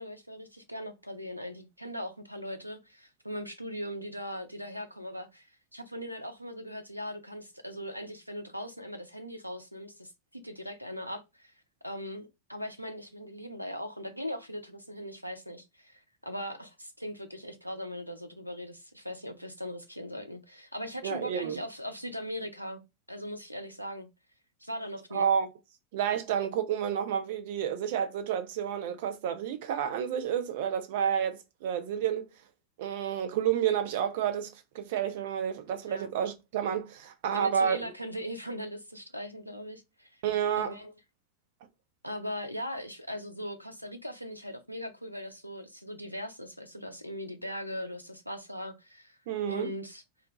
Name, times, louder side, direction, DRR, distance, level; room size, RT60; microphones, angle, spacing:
voice 1, 0.0-5.5 5.7-11.5 11.8-22.8 23.1-24.1 24.6-25.3 35.8-36.1 37.3-40.2 40.6-40.9 42.0-49.2 49.5-50.0, equal, 90° left, 0.5 m, -39 dB
voice 2, 21.0-21.6 25.1-25.5 25.9-32.3 32.8-37.9 40.2-40.7 49.3-49.7, right 8 dB, 50° right, 0.5 m, -30 dB
2.5 x 2.2 x 3.8 m
figure-of-eight pair, 90°, 0 cm